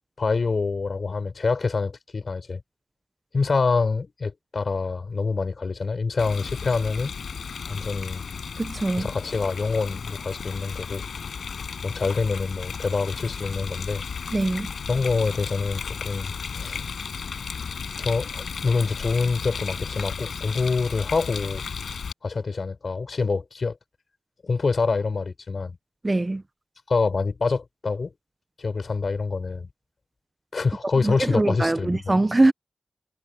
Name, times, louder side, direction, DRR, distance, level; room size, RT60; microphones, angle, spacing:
voice 1, 0.2-2.6 3.3-7.1 7.7-8.2 9.0-11.0 11.8-14.0 14.9-16.8 18.0-21.6 22.2-23.8 24.4-25.8 26.9-28.1 28.6-29.7 30.5-32.1, left 4 dB, 60° left, 6.4 m, -26 dB
Rain, 6.2-22.1, left 6 dB, 80° left, 7.4 m, -34 dB
voice 2, 8.6-9.1 14.3-14.7 26.0-26.4 31.0-32.5, right 2 dB, 35° right, 1.3 m, -22 dB
cardioid pair, 40°, 0 cm